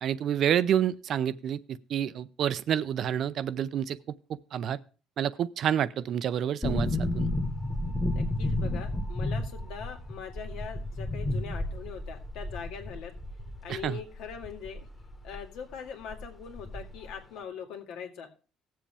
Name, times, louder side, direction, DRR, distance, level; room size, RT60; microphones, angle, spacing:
voice 1, 0.0-4.0 4.5-4.8 5.2-7.3 13.7-14.0, right 9 dB, 50° right, 16 dB, 0.5 m, -28 dB
sound 1, 6.6-15.5 15.7-15.8 16.1-17.1 17.4-17.5, left 1 dB, 10° left, 1.3 m, -32 dB
voice 2, 8.1-13.1 13.6-14.9 15.2-18.3, left 7 dB, 80° left, 4 dB, 2.2 m, -42 dB
17.5 x 7.5 x 3.4 m, 0.34 s
cardioid pair, 145°, 0 cm